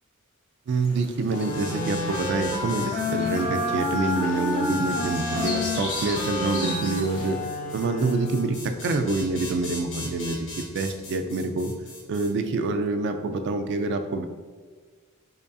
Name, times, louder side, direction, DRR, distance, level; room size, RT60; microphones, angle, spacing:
sound 1, 0.7-7.4, left 1 dB, 80° left, 1.5 m, -39 dB
voice 1, 0.7-7.4 7.7-11.7 12.1-14.2, right 3 dB, 55° right, 7 dB, 0.3 m, -26 dB
sound 2, 1.3-12.3, left 2 dB, 55° left, 1.3 m, -40 dB
sound 3, 1.3-8.7, left 2 dB, 35° left, 0.5 m, -30 dB
5.0 x 2.5 x 2.3 m, 1.5 s
head